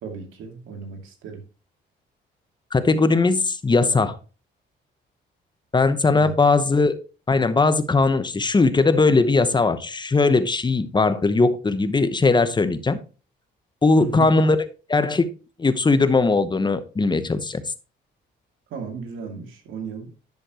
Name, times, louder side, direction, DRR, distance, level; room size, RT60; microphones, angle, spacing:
voice 1, 0.0-1.4 6.1-6.3 14.0-14.3 18.7-20.1, right 5 dB, 85° right, 4 dB, 2.4 m, -35 dB
voice 2, 2.7-4.2 5.7-7.0 7.3-13.0 13.8-14.6 14.9-15.3 15.6-17.6, left 3 dB, 20° left, 12 dB, 0.9 m, -19 dB
10.5 x 6.5 x 3.0 m, 0.34 s
cardioid pair, 90°, 20 cm